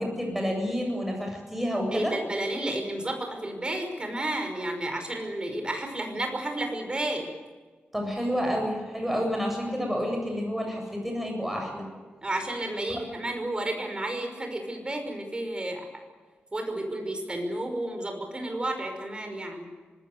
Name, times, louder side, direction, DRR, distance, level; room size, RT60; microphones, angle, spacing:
voice 1, 0.0-2.2 7.9-11.8 12.9-13.0, equal, 5° right, 1 dB, 7.9 m, -29 dB
voice 2, 1.9-7.3 12.2-15.9 16.5-19.6, right 1 dB, 25° right, 4 dB, 5.7 m, -32 dB
25.5 x 20.5 x 8.1 m, 1.4 s
wide cardioid pair, 140°, 4 cm